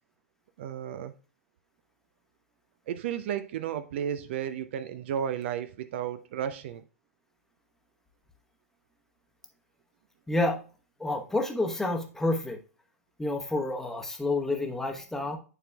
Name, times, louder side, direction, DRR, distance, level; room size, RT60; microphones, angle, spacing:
voice 1, 0.6-1.1 2.9-6.8, right 9 dB, 50° right, 0.4 m, -33 dB
voice 2, 10.3-10.6 11.0-12.6 13.2-15.4, left 2 dB, 5° left, 1.0 m, -29 dB
9.8 x 4.4 x 2.3 m
figure-of-eight pair, 105°, 8 cm